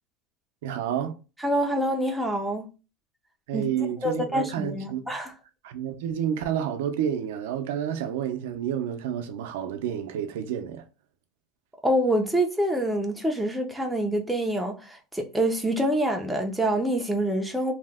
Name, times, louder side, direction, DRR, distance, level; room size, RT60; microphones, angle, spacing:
voice 1, 0.6-1.2 3.5-5.0 5.6-10.8, right 9 dB, 80° right, 0.5 m, -29 dB
voice 2, 1.4-2.7 3.5-3.6 4.0-5.3 11.8-17.7, right 1 dB, 5° right, 0.4 m, -26 dB
2.8 x 2.1 x 3.4 m
cardioid pair, 170°, 0 cm